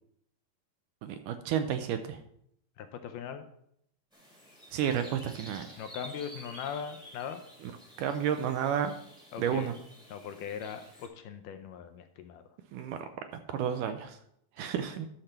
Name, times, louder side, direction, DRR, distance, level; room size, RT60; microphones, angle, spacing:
voice 1, 1.0-2.2 4.7-5.8 7.6-7.7 8.0-9.0 9.4-9.7 12.7-14.2 14.6-15.1, right 8 dB, 80° right, 8 dB, 2.0 m, -31 dB
voice 2, 2.8-3.4 5.8-7.4 9.3-9.7 10.1-12.4 14.6-14.7, left 7 dB, 80° left, 8 dB, 2.1 m, -40 dB
sound 1, 4.1-11.1, equal, ahead, 1.0 m, -51 dB
12.0 x 4.3 x 6.6 m, 0.73 s
omnidirectional pair, 4.1 m